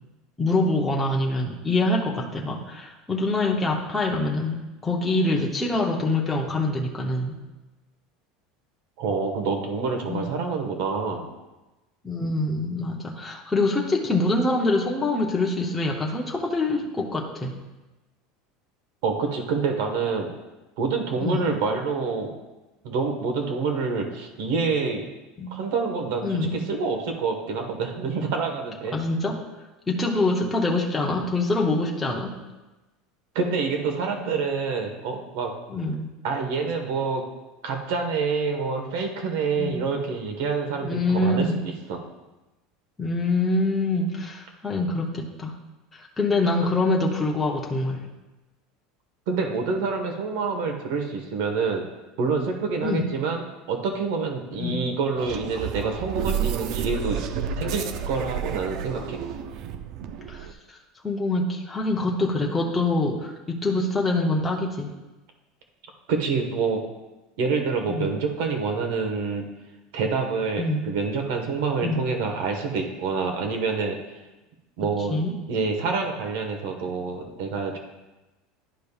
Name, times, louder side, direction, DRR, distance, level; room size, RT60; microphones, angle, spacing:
voice 1, 0.4-7.4 10.1-10.2 12.0-17.5 21.2-21.5 25.4-25.5 26.2-26.6 28.9-29.4 29.9-32.3 35.7-36.1 39.6-39.9 40.8-41.6 43.0-45.5 45.9-48.0 52.8-53.0 54.6-54.8 60.3-60.5 61.0-64.9 67.9-68.1 70.6-70.9 71.8-72.0 75.1-75.3, left 2 dB, 10° left, -2 dB, 0.7 m, -25 dB
voice 2, 9.0-11.3 19.0-20.3 20.8-22.3 22.8-25.0 25.5-28.9 33.3-35.5 36.2-37.2 37.6-42.0 49.3-51.8 52.2-57.2 57.6-59.2 66.1-66.8 67.4-69.4 69.9-74.0 74.8-75.2 75.5-77.8, right 4 dB, 65° right, 4 dB, 1.2 m, -27 dB
sound 1, 55.2-60.5, right 8 dB, 45° right, 0.4 m, -30 dB
11.5 x 5.2 x 2.4 m, 1.1 s
supercardioid pair, 160°, 0 cm